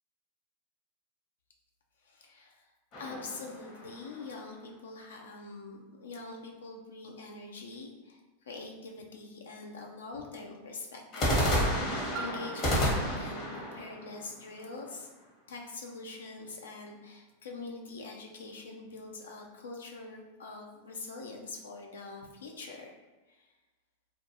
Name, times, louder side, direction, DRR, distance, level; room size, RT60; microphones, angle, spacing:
voice 1, 2.0-15.1 15.5-22.9 23.3-23.5, left 3 dB, 80° left, 1 dB, 0.4 m, -44 dB
sound 1, 2.9-4.4 11.1-15.1, equal, 45° left, 0.9 m, -31 dB
Piano, 12.1-17.6 18.3-18.4, right 3 dB, 40° right, 0.3 m, -49 dB
2.3 x 2.2 x 2.8 m, 1.2 s
hypercardioid pair, 100°, 0 cm